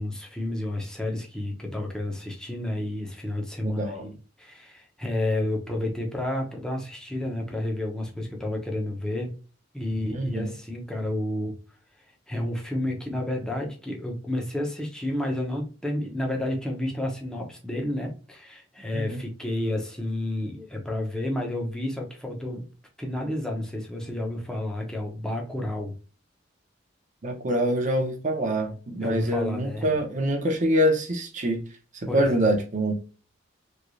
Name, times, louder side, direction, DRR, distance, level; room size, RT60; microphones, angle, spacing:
voice 1, 0.0-9.4 9.7-11.6 12.3-22.6 23.0-25.9 29.0-29.9 32.1-32.4, left 1 dB, 5° left, 0.8 m, -30 dB
voice 2, 3.6-4.1 10.1-10.5 18.9-19.2 27.2-31.6 32.1-32.9, right 1 dB, 40° right, 0.7 m, -25 dB
3.2 x 2.9 x 2.5 m
head